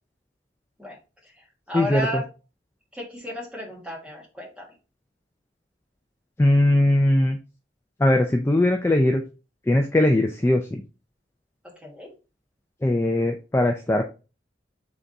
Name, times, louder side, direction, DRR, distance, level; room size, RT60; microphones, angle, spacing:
voice 1, 1.2-2.3 2.9-4.7 11.6-12.1, equal, 5° right, -2 dB, 1.4 m, -34 dB
voice 2, 1.7-2.2 6.4-7.4 8.0-9.2 9.7-10.8 12.8-14.1, left 1 dB, 15° left, 4 dB, 0.4 m, -20 dB
4.1 x 3.4 x 3.7 m, 0.31 s
head